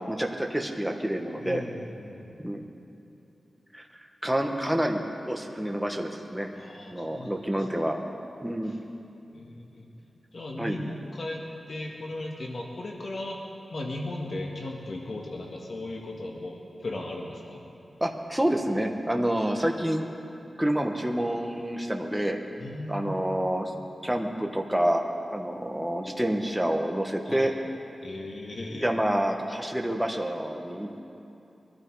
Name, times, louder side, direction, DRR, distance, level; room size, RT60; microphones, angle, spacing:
voice 1, 0.1-1.6 2.4-2.6 3.7-6.5 6.9-8.0 8.4-8.7 10.6-10.8 18.0-20.0 20.6-22.4 22.9-23.7 24.0-25.0 25.3-27.5 28.8-30.9, right 1 dB, 5° right, 2 dB, 1.3 m, -28 dB
voice 2, 1.4-2.6 6.5-7.3 9.3-9.9 10.3-11.4 11.7-13.4 13.7-17.6 22.6-23.3 27.2-27.5 28.0-28.9, left 2 dB, 55° left, -1 dB, 1.8 m, -37 dB
23.0 x 12.5 x 4.8 m, 2.8 s
wide cardioid pair, 95°, 0 cm